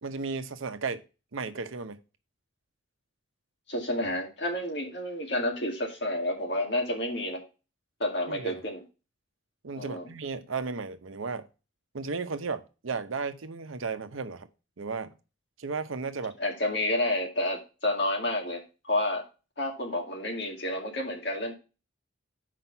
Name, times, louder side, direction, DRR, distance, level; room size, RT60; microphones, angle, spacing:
voice 1, 0.0-1.0 1.3-2.0 8.3-8.6 9.6-11.5 11.9-14.5 14.8-15.1 15.6-16.4, right 4 dB, 85° right, 10 dB, 0.7 m, -34 dB
voice 2, 3.7-7.4 8.0-8.8 9.8-10.1 16.4-19.2 19.6-21.6, left 1 dB, 55° left, 0 dB, 2.2 m, -30 dB
6.0 x 5.0 x 5.5 m, 0.31 s
head